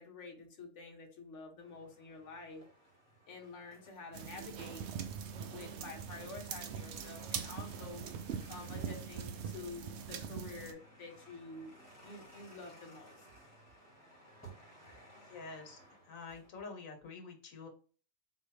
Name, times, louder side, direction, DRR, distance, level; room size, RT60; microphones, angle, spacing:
voice 1, 0.0-2.6 3.3-4.8 5.2-8.0 8.5-11.7 12.0-13.3, left 4 dB, 65° left, 2 dB, 1.3 m, -49 dB
sound 1, 1.6-16.5, right 1 dB, 10° left, 1.6 m, -59 dB
sound 2, 4.1-10.7, right 7 dB, 65° right, 0.8 m, -42 dB
voice 2, 15.3-15.8 16.1-17.7, left 4 dB, 80° left, 4 dB, 1.3 m, -47 dB
4.2 x 3.0 x 3.2 m, 0.40 s
omnidirectional pair, 1.4 m